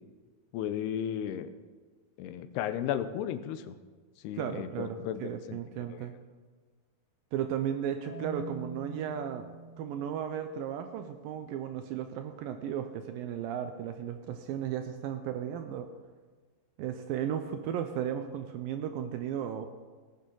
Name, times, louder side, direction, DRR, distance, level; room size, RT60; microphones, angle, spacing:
voice 1, 0.5-1.5 2.2-3.8 4.2-5.6 5.9-6.0, left 10 dB, 85° left, 11 dB, 2.8 m, -34 dB
voice 2, 4.3-6.1 7.3-9.5 9.8-15.9 16.8-19.7, right 9 dB, 85° right, 7 dB, 2.1 m, -35 dB
Marimba xylophone, 8.0-11.0, right 2 dB, 5° right, 3.9 m, -45 dB
18.0 x 9.9 x 3.9 m, 1.4 s
omnidirectional pair, 4.6 m